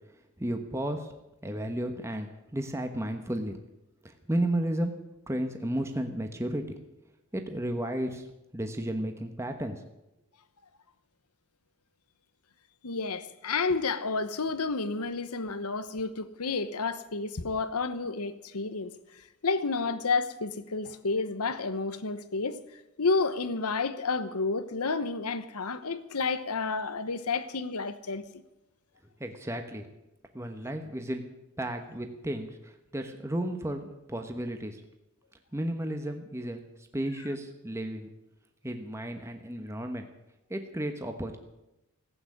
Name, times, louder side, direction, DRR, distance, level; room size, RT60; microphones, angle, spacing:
voice 1, 0.4-1.1 1.4-3.6 4.0-4.9 5.3-6.8 7.3-8.3 8.5-9.8 29.2-29.9 30.3-31.2 31.6-34.8 35.5-38.1 38.6-40.1 40.5-41.4, right 1 dB, 10° right, 1.2 m, -33 dB
voice 2, 12.8-22.6 23.0-28.2, left 4 dB, 85° left, 1.1 m, -30 dB
16.0 x 8.9 x 9.9 m
head